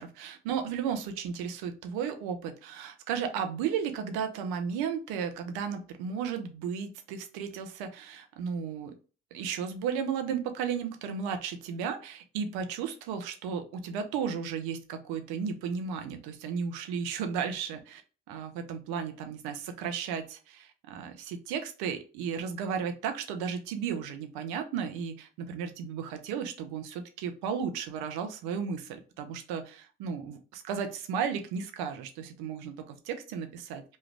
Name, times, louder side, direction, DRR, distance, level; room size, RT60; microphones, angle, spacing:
voice 1, 0.0-8.9 9.3-18.0 18.3-33.8, right 7 dB, 75° right, 7 dB, 0.7 m, -34 dB
3.1 x 2.3 x 3.2 m, 0.35 s
hypercardioid pair, 40°, 38 cm